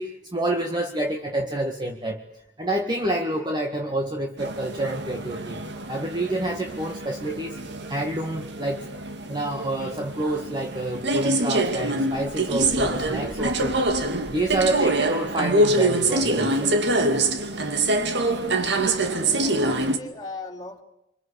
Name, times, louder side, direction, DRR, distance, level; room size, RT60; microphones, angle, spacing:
voice 1, 0.0-2.2 2.6-5.6 5.9-7.6 7.9-8.9 9.3-13.8 14.3-16.8 19.3-19.5, right 1 dB, 25° right, 2 dB, 1.9 m, -28 dB
sound 1, 4.4-20.0, right 2 dB, 65° right, 2.3 m, -25 dB
voice 2, 17.5-18.9 19.4-20.8, left 2 dB, 20° left, 1 dB, 3.1 m, -40 dB
26.0 x 25.5 x 8.4 m, 0.84 s
head